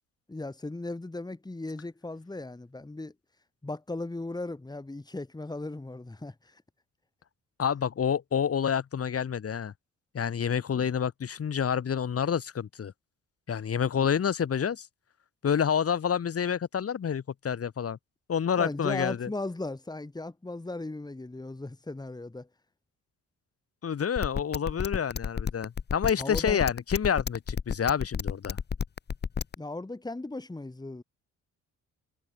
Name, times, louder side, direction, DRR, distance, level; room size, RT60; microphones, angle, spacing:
voice 1, 0.3-3.1 3.6-6.6 14.0-14.1 18.5-22.5 26.2-26.6 29.6-31.0, left 2 dB, 15° left, 3.8 m, -37 dB
voice 2, 7.6-9.7 10.1-12.9 13.5-14.9 15.4-18.0 18.3-19.3 23.8-28.6, left 7 dB, 50° left, 5.7 m, -28 dB
sound 1, 24.2-29.5, left 6 dB, 35° left, 1.1 m, -30 dB
cardioid pair, 90°, 30 cm